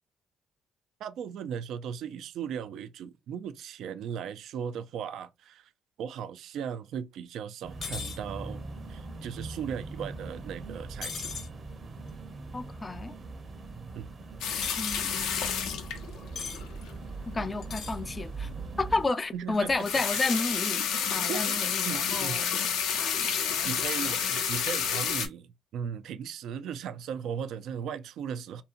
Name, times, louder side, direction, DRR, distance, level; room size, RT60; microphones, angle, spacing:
voice 1, 1.0-5.7 6.0-11.4 14.0-14.1 19.3-20.3 21.3-21.6 21.9-22.4 23.2-23.3 23.6-28.6, right 8 dB, 70° right, 0.3 m, -37 dB
sound 1, 7.6-19.1, right 3 dB, 45° right, 0.7 m, -41 dB
sound 2, 7.8-8.2 11.0-11.5 14.6-15.1 16.4-16.6 17.6-18.0, left 5 dB, 55° left, 0.8 m, -37 dB
voice 2, 12.5-13.1 14.8-15.7 17.3-18.5 18.8-22.5 22.9-23.9, left 3 dB, 30° left, 0.3 m, -32 dB
sound 3, 14.4-16.9 19.7-25.3, left 7 dB, 80° left, 0.6 m, -30 dB
2.7 x 2.6 x 2.4 m
supercardioid pair, 65°, 0 cm